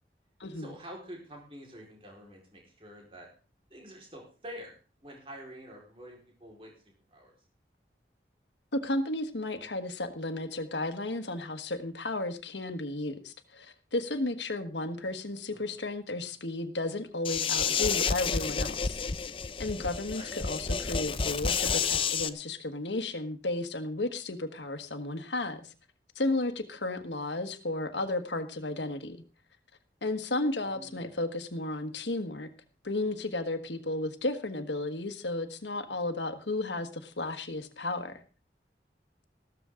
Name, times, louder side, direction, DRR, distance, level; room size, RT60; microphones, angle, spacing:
voice 1, 0.5-3.3 3.7-4.7 5.0-6.7 7.1-7.3 15.5-15.7 20.1-20.3 30.6-31.2, equal, 30° right, -1 dB, 4.4 m, -47 dB
voice 2, 8.7-19.0 19.6-25.7 26.1-29.2 30.0-32.5 32.8-38.2, left 2 dB, 90° left, 9 dB, 1.4 m, -33 dB
sound 1, 17.2-22.3, left 6 dB, 30° left, 0.6 m, -30 dB
14.5 x 13.0 x 3.8 m, 0.36 s
head